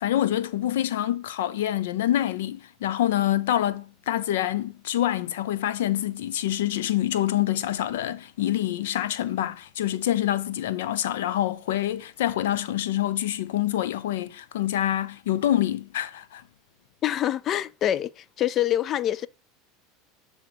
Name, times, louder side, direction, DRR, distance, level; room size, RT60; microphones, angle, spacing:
voice 1, 0.0-16.4, left 12 dB, 90° left, 0.5 m, -26 dB
voice 2, 17.0-19.3, left 12 dB, 40° left, 0.3 m, -25 dB
7.1 x 3.4 x 5.0 m
supercardioid pair, 120°, 0 cm